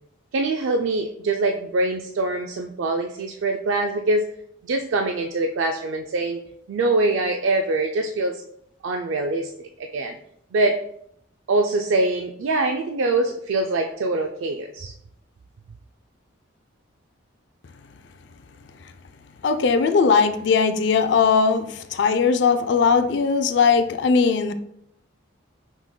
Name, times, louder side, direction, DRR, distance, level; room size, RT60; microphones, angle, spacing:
voice 1, 0.3-4.3 4.6-6.4 6.7-8.4 8.8-9.5 9.8-10.2 10.5-10.8 11.5-14.9, right 2 dB, 75° right, 5 dB, 0.3 m, -23 dB
voice 2, 19.4-24.5, left 5 dB, 60° left, 9 dB, 0.4 m, -19 dB
6.0 x 3.7 x 2.2 m, 0.73 s
head